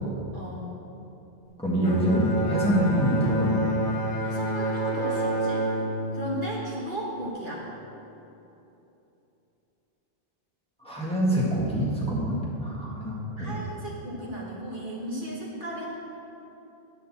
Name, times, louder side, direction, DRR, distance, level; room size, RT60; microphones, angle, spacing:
voice 1, 0.3-0.7 4.2-5.7 6.1-7.7 13.4-15.9, equal, 50° right, -5 dB, 1.5 m, -35 dB
voice 2, 1.6-3.5 10.8-13.6, right 1 dB, 5° left, -6 dB, 1.6 m, -25 dB
Bowed string instrument, 1.8-7.3, right 1 dB, 40° left, 1.1 m, -28 dB
9.9 x 4.2 x 7.3 m, 3.0 s
omnidirectional pair, 1.1 m